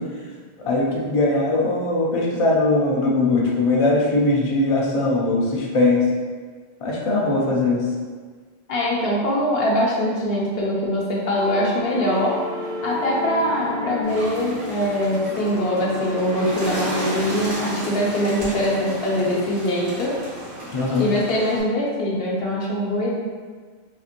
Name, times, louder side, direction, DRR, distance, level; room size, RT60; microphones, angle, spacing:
voice 1, 0.6-6.0 6.8-7.8 20.7-21.1, left 2 dB, 45° left, -3 dB, 0.5 m, -20 dB
voice 2, 8.7-12.3 12.8-20.1 21.0-23.1, equal, 65° left, -4 dB, 1.0 m, -23 dB
sound 1, 11.4-19.4, left 2 dB, 15° right, 0.6 m, -33 dB
Bird, 14.0-21.6, right 1 dB, 70° right, 1.7 m, -33 dB
4.3 x 2.8 x 2.4 m, 1.5 s
omnidirectional pair, 1.1 m